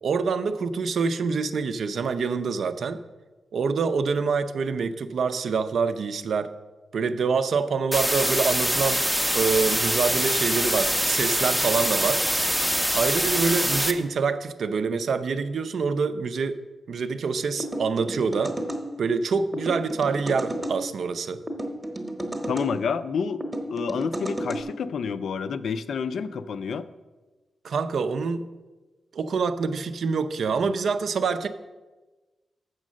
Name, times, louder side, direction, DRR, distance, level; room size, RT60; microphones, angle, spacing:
voice 1, 0.0-3.0 3.5-6.5 6.9-9.0 9.3-12.2 12.9-16.6 16.9-18.6 19.0-21.4 27.6-28.5 29.1-31.5, right 5 dB, 65° right, 11 dB, 0.5 m, -26 dB
sound 1, 7.9-13.9, equal, ahead, 0.5 m, -24 dB
sound 2, 17.6-18.8 19.5-20.8 21.5-22.7 23.4-24.6, right 1 dB, 20° right, 0.9 m, -32 dB
voice 2, 22.5-23.4 23.7-26.9, left 6 dB, 70° left, 12 dB, 0.4 m, -29 dB
7.4 x 6.4 x 6.2 m, 1.2 s
wide cardioid pair, 155°, 0 cm